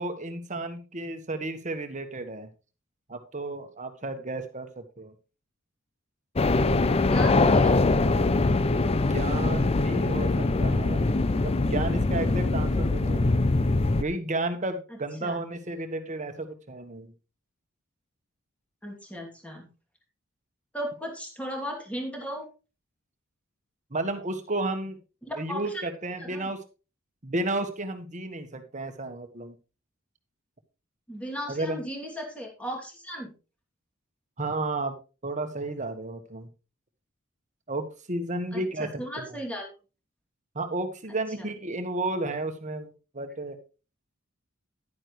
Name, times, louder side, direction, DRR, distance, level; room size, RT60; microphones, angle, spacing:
voice 1, 0.0-2.5 3.1-5.1 8.9-13.3 14.0-17.1 23.9-25.0 25.4-26.6 27.2-29.5 31.5-31.8 34.4-34.9 35.2-36.5 37.7-38.9 39.2-39.3 40.5-43.6, right 2 dB, 35° right, 8 dB, 1.5 m, -32 dB
sound 1, 6.4-14.0, left 2 dB, 30° left, 0.6 m, -23 dB
voice 2, 7.0-7.8 14.9-15.4 18.8-19.7 20.7-22.5 25.2-25.8 26.2-26.5 31.1-33.3 38.5-39.6 41.1-41.5, equal, 5° left, 1 dB, 2.9 m, -36 dB
11.0 x 9.9 x 3.2 m, 0.32 s
head